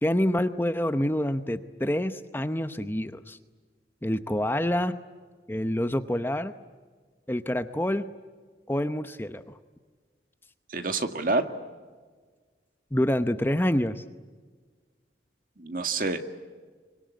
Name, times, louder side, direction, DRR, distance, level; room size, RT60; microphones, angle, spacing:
voice 1, 0.0-3.4 4.0-4.9 5.5-6.5 7.3-8.1 8.7-9.4 12.9-14.0, left 1 dB, 10° left, 10 dB, 0.8 m, -27 dB
voice 2, 10.7-11.4 15.6-16.2, right 3 dB, 50° right, 7 dB, 1.9 m, -27 dB
25.0 x 25.0 x 9.4 m, 1.5 s
head